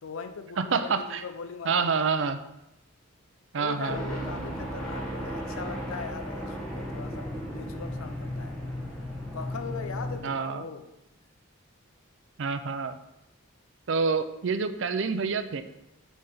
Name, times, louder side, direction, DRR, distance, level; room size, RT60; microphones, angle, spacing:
voice 1, 0.0-2.1 3.6-8.6 9.3-10.9, left 5 dB, 75° left, 9 dB, 0.6 m, -40 dB
voice 2, 0.6-1.2 1.6-2.4 3.5-4.0 10.2-10.6 12.4-12.9 13.9-15.6, right 5 dB, 60° right, 10 dB, 0.5 m, -27 dB
sound 1, 3.9-10.2, equal, 5° left, 1.1 m, -35 dB
5.7 x 4.1 x 4.9 m, 0.90 s
head